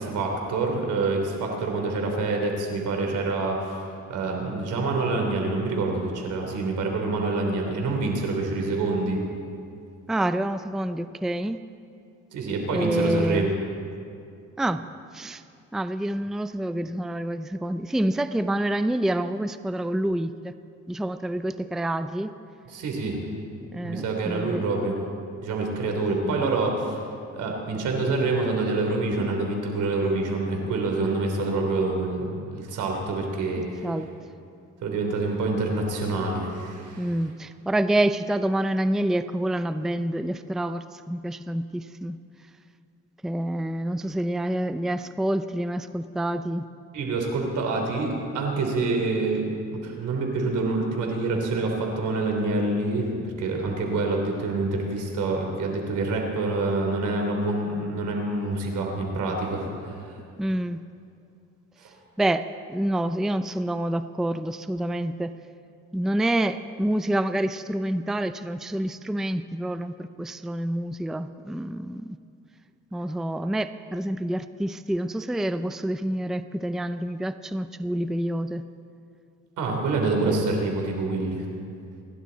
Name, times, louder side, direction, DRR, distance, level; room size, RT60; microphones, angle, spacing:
voice 1, 0.0-9.2 12.3-13.5 22.7-23.2 23.8-25.0 25.4-27.0 27.3-33.9 34.8-37.1 46.9-60.1 61.8-61.9 79.6-81.5, right 3 dB, 80° right, 1 dB, 3.4 m, -26 dB
voice 2, 10.1-11.6 12.7-13.5 14.6-14.8 15.1-15.4 15.7-20.5 20.9-22.3 23.7-24.6 26.2-26.4 33.8-34.1 37.0-42.2 43.2-46.7 60.4-60.8 62.2-62.4 62.7-65.4 65.9-72.2 72.9-78.6 80.2-80.4, right 1 dB, ahead, 11 dB, 0.5 m, -27 dB
28.5 x 11.5 x 4.1 m, 2.5 s
cardioid pair, 90°, 30 cm